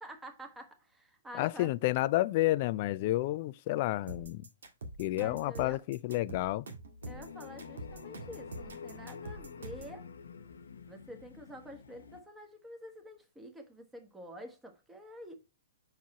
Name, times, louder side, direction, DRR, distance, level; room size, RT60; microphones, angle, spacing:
voice 1, 0.0-1.7 5.2-5.8 7.1-10.1 10.9-15.3, equal, 10° right, 1.4 m, -48 dB
voice 2, 1.4-4.4 5.0-6.7, left 17 dB, 45° left, 0.4 m, -30 dB
sound 1, 4.1-10.0, right 2 dB, 75° right, 1.8 m, -45 dB
sound 2, 7.0-12.2, left 6 dB, 80° left, 0.7 m, -48 dB
5.9 x 4.6 x 4.1 m
hypercardioid pair, 130°, 0 cm